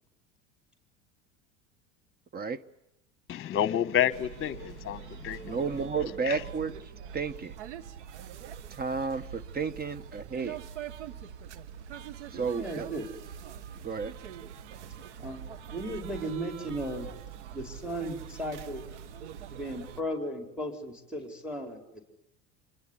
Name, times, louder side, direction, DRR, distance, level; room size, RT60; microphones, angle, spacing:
voice 1, 3.3-5.6 6.2-6.4, left 10 dB, 35° left, 1.3 m, -29 dB
sound 1, 4.1-20.0, right 8 dB, 90° right, 1.6 m, -44 dB
voice 2, 5.4-6.7 7.1-7.5 8.8-10.6 12.3-12.9 13.8-14.1, right 5 dB, 25° right, 1.3 m, -32 dB
voice 3, 12.3-13.0 15.2-17.1 17.5-18.8 19.5-22.0, right 1 dB, 5° right, 5.0 m, -36 dB
26.5 x 22.0 x 8.5 m
supercardioid pair, 100°, 34 cm